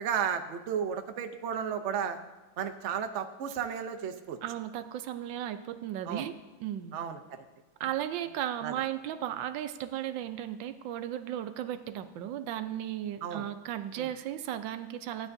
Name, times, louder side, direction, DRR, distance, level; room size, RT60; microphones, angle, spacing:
voice 1, 0.0-2.2 2.6-4.4 6.1-6.3 6.9-7.4 8.6-8.8 13.2-13.5 14.0-14.1, right 7 dB, 60° right, 7 dB, 0.7 m, -33 dB
voice 2, 4.4-6.3 6.6-6.9 7.8-15.3, right 11 dB, 80° right, 10 dB, 1.3 m, -35 dB
15.0 x 9.6 x 2.6 m, 1.2 s
omnidirectional pair, 2.0 m